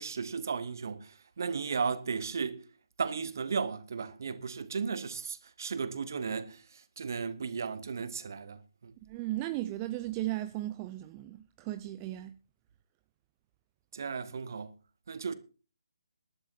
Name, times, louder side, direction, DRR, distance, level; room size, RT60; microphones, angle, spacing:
voice 1, 0.0-2.6 3.0-8.9 13.9-14.7 15.1-15.3, right 5 dB, 50° right, 1.5 m, -35 dB
voice 2, 9.0-12.3, right 15 dB, 20° right, 0.5 m, -36 dB
21.0 x 11.5 x 2.7 m
figure-of-eight pair, 140°, 2 cm